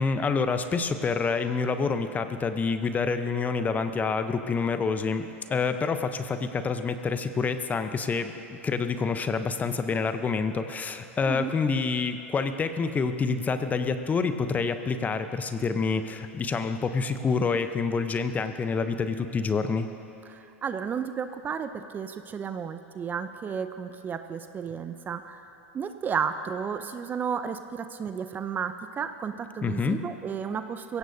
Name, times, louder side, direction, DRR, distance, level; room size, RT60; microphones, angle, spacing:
voice 1, 0.0-19.9 29.6-30.0, left 4 dB, 20° left, 9 dB, 0.8 m, -27 dB
voice 2, 20.3-25.4 25.7-31.0, right 7 dB, 25° right, 10 dB, 0.6 m, -33 dB
21.5 x 16.5 x 2.8 m, 2.9 s
hypercardioid pair, 90°, 7 cm